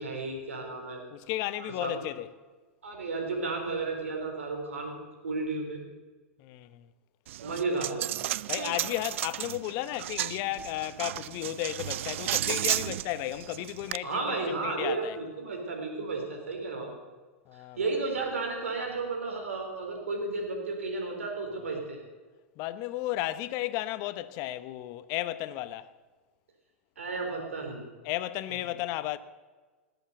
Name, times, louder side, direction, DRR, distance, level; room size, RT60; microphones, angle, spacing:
voice 1, 0.0-1.0 1.6-1.9 2.8-4.9 5.2-5.8 7.4-8.1 14.0-16.9 17.5-22.0 27.0-27.8, right 3 dB, 85° right, 4.1 m, -33 dB
voice 2, 1.1-2.3 6.4-6.9 8.5-14.2 14.6-15.2 17.5-17.8 22.6-25.9 28.0-29.2, left 15 dB, 50° left, 0.8 m, -34 dB
Coin (dropping), 7.3-14.0, right 13 dB, 70° right, 0.4 m, -33 dB
19.0 x 8.1 x 8.1 m
hypercardioid pair, 105°, 7 cm